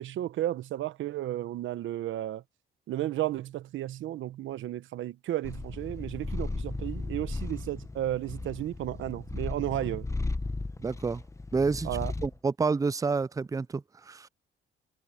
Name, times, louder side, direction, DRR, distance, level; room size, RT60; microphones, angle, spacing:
voice 1, 0.0-2.4 2.9-10.1 11.8-12.1, right 13 dB, 75° right, 1.1 m, -33 dB
Purr, 5.4-12.4, left 3 dB, 15° left, 1.0 m, -36 dB
voice 2, 10.8-11.2 11.5-11.9 12.2-14.3, right 4 dB, 15° right, 0.4 m, -29 dB
cardioid pair, 90°, 20 cm